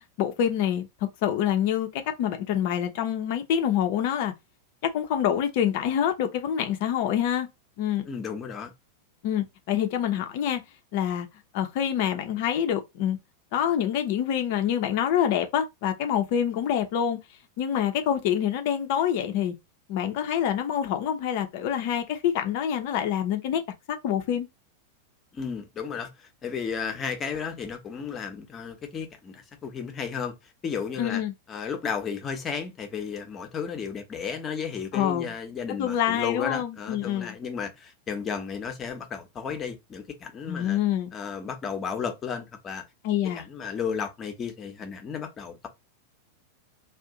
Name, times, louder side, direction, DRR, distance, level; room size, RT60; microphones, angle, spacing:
voice 1, 0.2-0.9 1.2-4.3 4.8-7.5 7.8-8.1 9.2-10.6 10.9-11.3 11.5-13.2 13.5-17.2 17.6-19.5 19.9-23.6 23.9-24.5 31.0-31.3 34.9-35.3 35.8-37.3 40.5-41.1 43.0-43.5, left 9 dB, 50° left, 0.6 m, -26 dB
voice 2, 8.0-8.7 25.3-30.3 30.6-31.2 31.5-40.8 41.1-42.8 43.2-45.7, left 6 dB, 25° left, 0.9 m, -33 dB
2.6 x 2.4 x 3.7 m
figure-of-eight pair, 90°, 0 cm